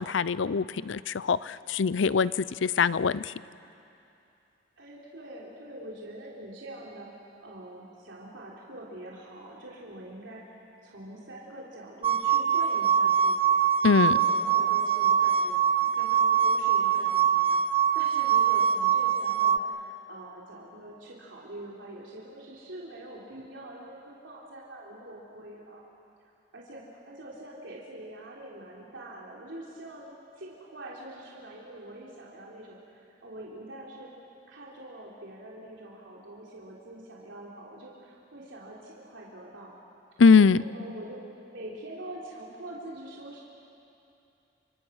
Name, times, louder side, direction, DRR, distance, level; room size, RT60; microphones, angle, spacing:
voice 1, 0.0-3.3 13.8-14.1 40.2-40.6, left 5 dB, 80° left, 18 dB, 0.5 m, -22 dB
voice 2, 4.8-13.6 14.0-25.8 26.5-34.1 34.5-39.7 40.4-41.2 41.5-43.4, right 1 dB, 85° right, -4 dB, 3.5 m, -44 dB
sound 1, 12.0-19.6, right 8 dB, 30° right, 0.5 m, -23 dB
30.0 x 26.0 x 6.4 m, 2.8 s
head